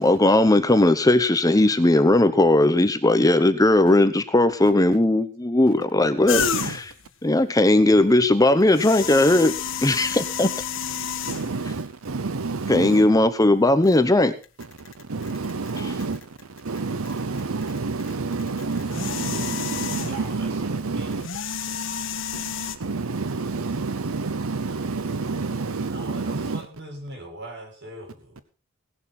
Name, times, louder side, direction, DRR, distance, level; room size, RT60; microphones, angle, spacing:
voice 1, 0.0-6.9 7.2-9.5 9.8-10.5 12.7-14.3 15.8-15.9, left 1 dB, 15° left, 1.0 m, -18 dB
sound 1, 6.3-7.0 8.6-11.7 12.5-12.6 13.8-14.0 14.4-16.8 17.1-20.4 21.1-22.8, left 7 dB, 65° left, 1.7 m, -30 dB
voice 2, 6.3-6.8 11.2-13.1 15.1-16.2 16.6-21.3 22.3-22.4 22.8-26.6, right 4 dB, 85° right, 0.8 m, -28 dB
voice 3, 20.1-21.2 25.1-25.2 25.8-28.4, right 1 dB, 55° right, 7.0 m, -40 dB
18.5 x 11.5 x 4.3 m
head